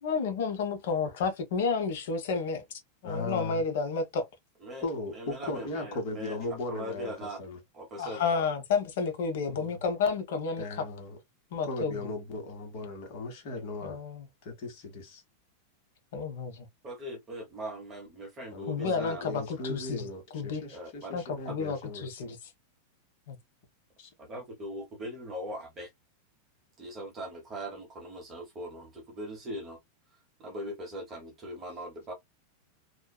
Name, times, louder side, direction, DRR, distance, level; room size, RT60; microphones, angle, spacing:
voice 1, 0.0-2.6 3.0-4.3 8.0-10.9 11.5-12.1 13.8-14.3 16.1-16.7 18.7-20.1 20.3-20.6 21.1-22.5 23.3-23.4, left 5 dB, 70° left, 0.8 m, -31 dB
voice 2, 3.0-3.6 4.8-7.6 9.5-9.8 10.6-11.2 11.6-14.0 14.4-15.2 18.5-22.1 24.0-24.1, left 3 dB, 45° left, 1.3 m, -37 dB
voice 3, 5.1-6.4 6.7-7.4 7.7-8.4 16.8-19.2 20.7-21.1 21.5-21.6 24.2-25.9 26.8-29.8 30.4-32.1, right 1 dB, 20° right, 0.8 m, -40 dB
2.5 x 2.3 x 2.2 m
supercardioid pair, 160°, 0 cm